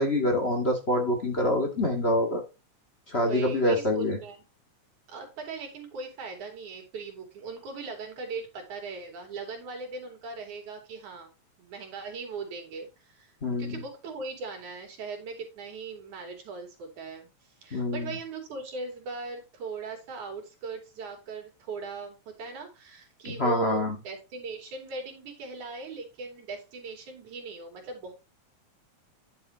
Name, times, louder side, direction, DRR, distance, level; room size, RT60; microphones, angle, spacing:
voice 1, 0.0-2.4 3.1-4.2 13.4-13.8 17.7-18.1 23.2-24.0, left 1 dB, 25° left, 3 dB, 1.7 m, -26 dB
voice 2, 3.2-4.4 5.1-11.3 11.6-13.3 13.6-17.3 17.6-28.1, right 4 dB, 90° right, 3 dB, 4.3 m, -39 dB
10.0 x 7.6 x 2.9 m, 0.29 s
omnidirectional pair, 3.4 m